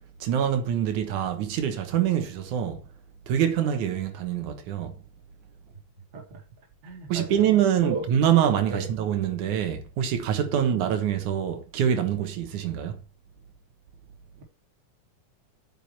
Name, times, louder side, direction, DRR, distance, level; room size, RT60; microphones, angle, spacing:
voice 1, 0.2-2.8 3.3-4.9 7.1-13.0, right 9 dB, 80° right, 2.7 m, -25 dB
voice 2, 6.1-6.4 6.8-7.4 7.8-8.1 8.7-8.9 10.5-10.6 14.4-14.5, right 3 dB, 25° right, 2.0 m, -35 dB
8.5 x 6.1 x 4.5 m
omnidirectional pair, 3.4 m